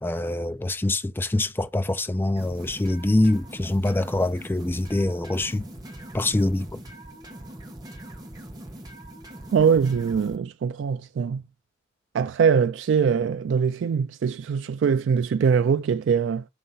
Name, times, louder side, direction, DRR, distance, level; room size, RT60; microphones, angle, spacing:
voice 1, 0.0-5.7 6.1-6.8, left 1 dB, 10° left, 0.3 m, -24 dB
sound 1, 2.4-10.4, right 1 dB, 20° right, 1.0 m, -42 dB
voice 2, 9.5-11.4 12.1-16.4, right 6 dB, 70° right, 0.3 m, -22 dB
6.5 x 2.8 x 5.5 m
head